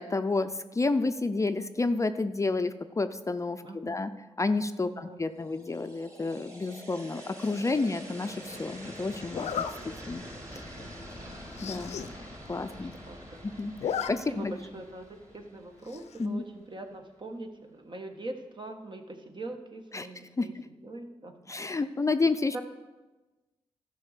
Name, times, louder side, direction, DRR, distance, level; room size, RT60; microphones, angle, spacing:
voice 1, 0.0-4.1 4.4-10.2 11.6-12.0 12.5-12.9 13.4-14.5 16.2-16.4 19.9-20.1 20.4-20.6 21.5-22.5, left 3 dB, 30° left, 10 dB, 0.5 m, -30 dB
voice 2, 3.6-4.1 4.9-5.2 7.5-7.7 10.3-11.3 12.8-13.5 14.3-15.1 15.3-21.4 22.5-22.6, right 2 dB, 45° right, 5 dB, 1.4 m, -43 dB
sound 1, 5.4-16.4, equal, 30° right, 3.3 m, -46 dB
Zipper (clothing), 7.4-7.8 9.3-9.7 10.3-10.5 10.8-10.9 11.1-11.2 11.5-12.1 12.5-12.6 12.7-13.3 13.6-14.1 14.4-14.5 15.9-16.3, left 8 dB, 85° left, 0.6 m, -35 dB
12.0 x 5.3 x 6.6 m, 1.2 s
cardioid pair, 55°, 11 cm